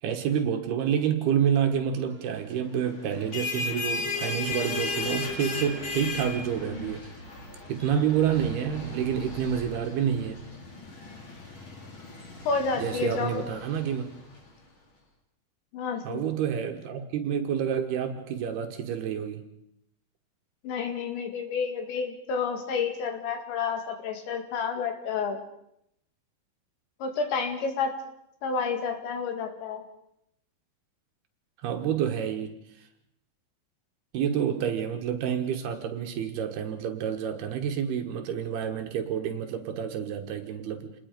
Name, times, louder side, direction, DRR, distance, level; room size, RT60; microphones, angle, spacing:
voice 1, 0.0-7.1 7.7-10.4 12.8-14.1 16.0-19.4 31.6-32.6 34.1-40.9, right 8 dB, 65° right, 5 dB, 3.1 m, -28 dB
sound 1, 3.1-14.4, left 4 dB, 30° left, 3.3 m, -36 dB
voice 2, 12.5-13.4 15.7-16.3 20.6-25.4 27.0-27.9 28.4-29.8, left 5 dB, 75° left, 5 dB, 4.6 m, -30 dB
28.5 x 20.0 x 5.2 m, 0.76 s
omnidirectional pair, 5.3 m